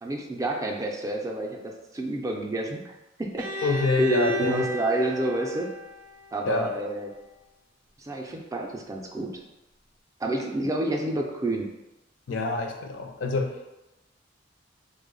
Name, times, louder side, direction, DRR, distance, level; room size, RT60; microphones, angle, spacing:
voice 1, 0.0-3.7 4.0-5.7 6.3-7.1 8.0-9.4 10.2-11.7, right 1 dB, 15° right, 1 dB, 0.3 m, -29 dB
Bowed string instrument, 3.4-7.2, equal, 80° right, 0.4 m, -36 dB
voice 2, 3.6-4.7 6.5-6.7 12.3-13.7, left 3 dB, 75° left, 4 dB, 0.4 m, -27 dB
3.3 x 2.0 x 3.7 m, 0.99 s
head